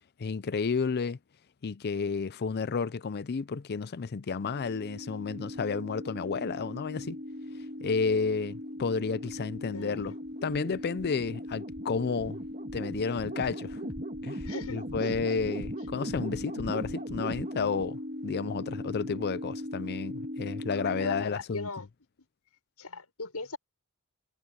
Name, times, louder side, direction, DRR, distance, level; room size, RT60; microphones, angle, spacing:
voice 1, 0.2-1.2 1.6-7.2 7.8-12.4 12.7-13.9 14.2-14.5 14.7-21.7, left 5 dB, 45° left, 0.5 m, -31 dB
sound 1, 4.4-21.3, equal, 35° right, 1.8 m, -38 dB
voice 2, 14.4-15.2 20.7-21.9 22.8-23.6, left 3 dB, 90° left, 6.7 m, -39 dB
head